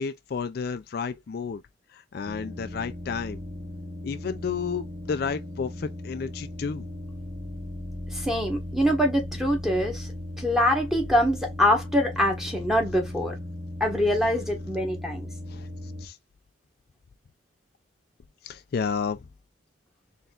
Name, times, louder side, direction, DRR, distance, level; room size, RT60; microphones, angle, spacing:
voice 1, 0.0-1.6 1.9-3.4 4.0-6.9 15.5-15.7 16.0-16.2 18.4-19.2, left 5 dB, 50° left, 0.3 m, -31 dB
sound 1, 2.3-16.1, left 1 dB, 20° right, 1.3 m, -37 dB
voice 2, 8.1-10.1 10.4-13.4 13.8-15.3, equal, ahead, 1.3 m, -24 dB
4.2 x 3.4 x 2.4 m
head